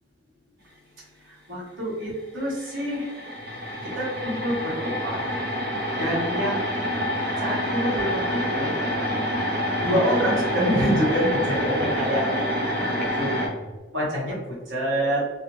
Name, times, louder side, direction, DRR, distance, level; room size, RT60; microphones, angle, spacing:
voice 1, 1.3-3.1 3.8-5.2 6.0-6.6 7.4-8.7 9.8-12.5 13.1-13.4 13.9-15.3, equal, 90° right, -6 dB, 1.0 m, -26 dB
sound 1, 2.2-2.3 2.5-13.5, equal, 55° right, 0.6 m, -27 dB
sound 2, 3.4-13.8, right 1 dB, 55° left, 0.5 m, -40 dB
2.4 x 2.0 x 2.9 m, 1.2 s
head